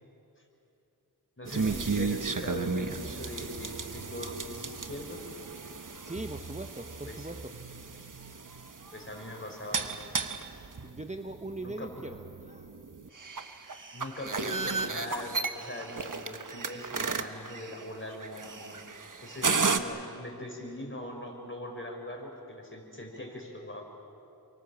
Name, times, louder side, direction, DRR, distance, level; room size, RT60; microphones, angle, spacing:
voice 1, 1.4-5.2 7.0-7.3 8.9-10.0 11.6-11.9 13.9-18.8 19.2-23.8, left 1 dB, 30° left, 1 dB, 5.6 m, -41 dB
sound 1, 1.4-19.8, right 4 dB, 55° right, 1.3 m, -34 dB
voice 2, 6.0-7.6 10.8-12.8, right 2 dB, 20° right, 6 dB, 1.0 m, -41 dB
28.5 x 24.5 x 7.4 m, 2.8 s
wide cardioid pair, 55°, 38 cm